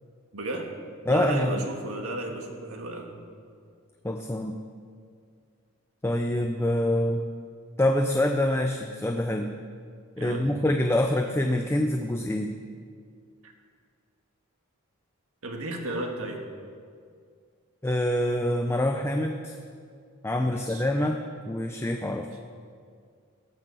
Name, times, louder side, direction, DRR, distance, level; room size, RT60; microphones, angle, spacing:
voice 1, 0.3-0.7 1.1-3.1 10.2-10.5 13.4-13.5 15.4-16.4 20.5-20.9 22.1-22.3, right 2 dB, 75° right, 3 dB, 1.6 m, -34 dB
voice 2, 1.1-1.7 4.0-4.6 6.0-7.3 7.8-9.5 10.2-12.5 17.8-19.6 20.2-21.2 21.5-22.3, left 1 dB, 10° left, 4 dB, 0.5 m, -25 dB
17.5 x 6.0 x 6.9 m, 2.2 s
head